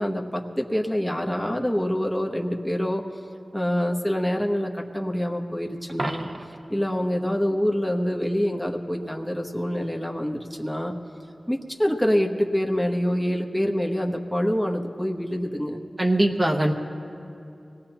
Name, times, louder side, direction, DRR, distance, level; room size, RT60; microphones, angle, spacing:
voice 1, 0.0-3.0 3.5-6.3 6.7-10.9 11.5-15.8, equal, 5° left, 1 dB, 1.1 m, -26 dB
Coin (dropping), 5.9-6.8 12.8-13.0, right 2 dB, 60° right, 1.0 m, -33 dB
voice 2, 16.0-16.7, right 1 dB, 35° right, -1 dB, 1.0 m, -21 dB
24.0 x 18.5 x 3.0 m, 2.7 s
wide cardioid pair, 50°, 0 cm